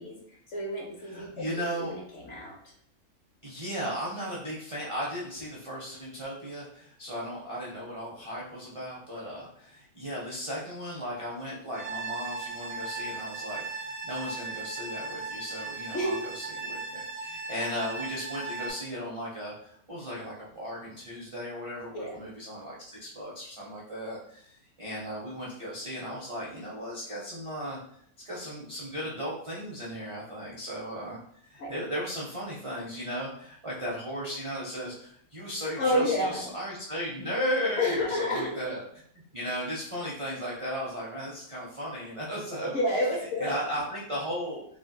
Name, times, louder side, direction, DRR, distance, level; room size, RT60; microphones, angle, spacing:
voice 1, 0.0-2.6 15.9-16.2 21.9-22.2 31.6-31.7 35.8-36.5 37.8-38.5 42.7-43.7, left 1 dB, 60° left, -1 dB, 0.9 m, -30 dB
voice 2, 1.1-1.9 3.4-27.8 28.2-38.8 39.3-42.8 43.4-44.6, equal, 45° right, -6 dB, 0.4 m, -36 dB
sound 1, 11.7-18.7, right 3 dB, 70° right, 0.9 m, -37 dB
3.3 x 2.7 x 2.2 m, 0.65 s
omnidirectional pair, 1.6 m